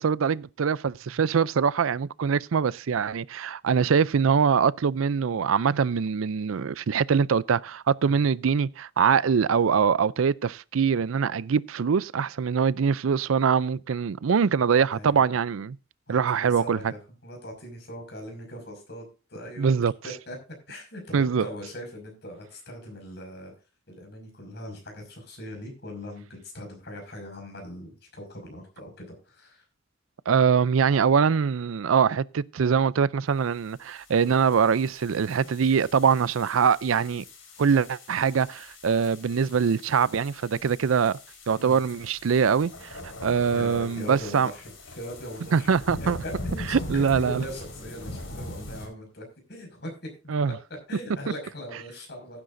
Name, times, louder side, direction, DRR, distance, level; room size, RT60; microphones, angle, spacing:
voice 1, 0.0-15.8 16.1-16.9 19.6-19.9 21.1-21.5 30.3-37.2 37.6-41.2 41.5-44.5 45.5-46.2 46.7-47.4 50.3-50.5, right 6 dB, 85° right, 0.4 m, -23 dB
voice 2, 14.9-15.4 16.1-17.0 17.2-19.7 20.0-20.4 20.7-23.5 23.9-29.6 41.5-41.8 43.5-45.7 46.2-50.6 50.9-52.4, left 1 dB, 55° left, 5.8 m, -41 dB
sound 1, 33.7-48.9, left 1 dB, 85° left, 4.7 m, -41 dB
16.5 x 9.8 x 2.6 m
head